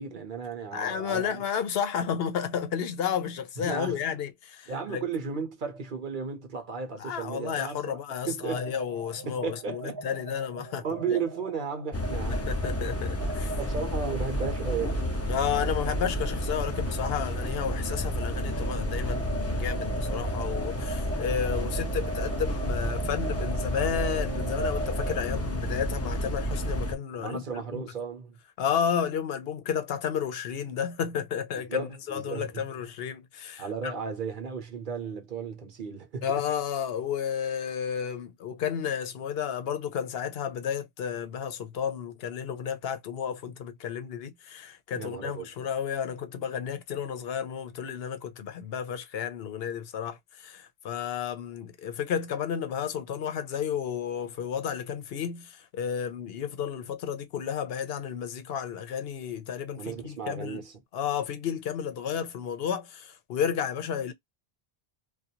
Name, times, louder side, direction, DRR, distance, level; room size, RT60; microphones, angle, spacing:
voice 1, 0.0-1.4 3.6-4.0 4.7-8.0 8.3-8.6 9.2-10.0 10.8-12.4 13.6-15.1 17.0-17.2 20.5-20.6 27.1-28.4 31.7-32.6 33.6-36.3 44.9-45.5 59.8-60.7, right 5 dB, 55° right, 0.9 m, -34 dB
voice 2, 0.7-5.0 7.0-11.2 12.3-13.5 15.3-27.4 27.7-27.9 28.6-33.9 36.2-60.6 60.9-64.1, left 8 dB, 75° left, 0.8 m, -32 dB
sound 1, 8.5-25.2, right 2 dB, 30° right, 0.5 m, -40 dB
sound 2, 11.9-26.9, equal, 25° left, 0.4 m, -31 dB
2.4 x 2.3 x 2.7 m
omnidirectional pair, 1.0 m